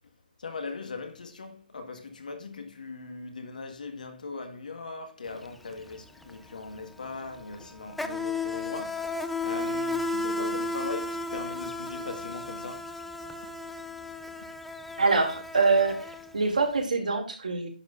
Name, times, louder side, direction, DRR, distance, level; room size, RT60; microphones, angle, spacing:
voice 1, 0.4-12.9, left 4 dB, 60° left, 1.6 m, -40 dB
Insect, 5.3-5.5 5.7-16.7, left 2 dB, ahead, 0.4 m, -34 dB
voice 2, 15.0-16.0 16.3-17.7, right 4 dB, 60° right, 2.4 m, -24 dB
10.5 x 6.3 x 2.5 m
figure-of-eight pair, 150°, 5 cm